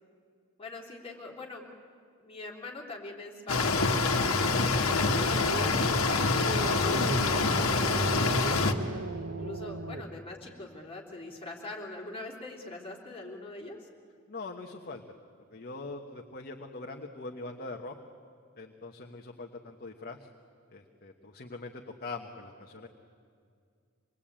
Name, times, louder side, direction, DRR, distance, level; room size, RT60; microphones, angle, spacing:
voice 1, 0.6-1.6 2.2-8.5 9.1-13.9, left 2 dB, 25° left, -1 dB, 3.3 m, -43 dB
sound 1, 3.5-8.7, left 3 dB, 85° left, 1.6 m, -26 dB
sound 2, 5.3-10.1, right 2 dB, 65° right, 1.1 m, -36 dB
voice 2, 14.3-15.0 15.5-17.9 18.6-20.3 20.7-22.9, left 3 dB, 45° left, 2 dB, 1.3 m, -42 dB
25.5 x 21.0 x 8.8 m, 2.2 s
head